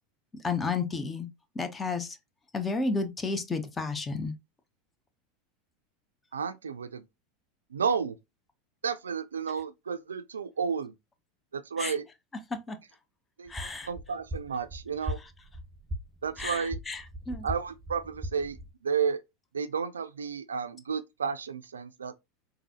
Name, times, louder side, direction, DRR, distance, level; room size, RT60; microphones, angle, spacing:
voice 1, 0.4-1.3 1.5-2.2 2.5-4.3 11.8-11.9 12.7-12.8 13.5-13.9 16.4-17.0 17.3-17.5, left 4 dB, 20° left, 0.8 m, -31 dB
voice 2, 6.3-7.0 7.7-8.2 8.8-10.9 11.5-12.1 13.4-15.2 16.2-16.8 17.4-18.6 18.8-19.2 19.5-22.1, right 6 dB, 85° right, 0.3 m, -32 dB
sound 1, 13.5-18.7, equal, 10° right, 0.9 m, -40 dB
3.9 x 2.7 x 2.8 m
hypercardioid pair, 85°, 0 cm